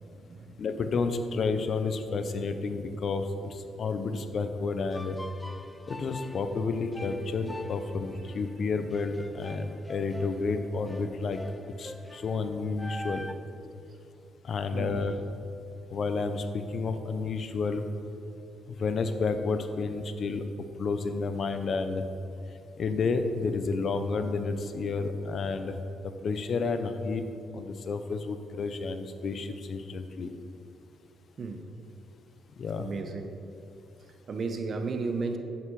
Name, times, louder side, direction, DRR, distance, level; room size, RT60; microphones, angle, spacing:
voice 1, 0.0-0.6 14.7-15.1 31.4-31.6 32.8-33.3 34.3-35.4, right 4 dB, 45° right, 7 dB, 0.9 m, -34 dB
voice 2, 0.6-5.2 5.9-11.4 11.8-13.2 14.4-15.2 15.9-17.8 18.8-20.4 20.8-22.0 22.8-25.8 26.0-27.2 27.5-30.3 32.6-32.9, left 4 dB, 55° left, 9 dB, 0.7 m, -30 dB
sound 1, 4.9-13.3, left 1 dB, 15° left, 0.4 m, -45 dB
9.6 x 7.9 x 4.8 m, 2.7 s
cardioid pair, 90°, 0 cm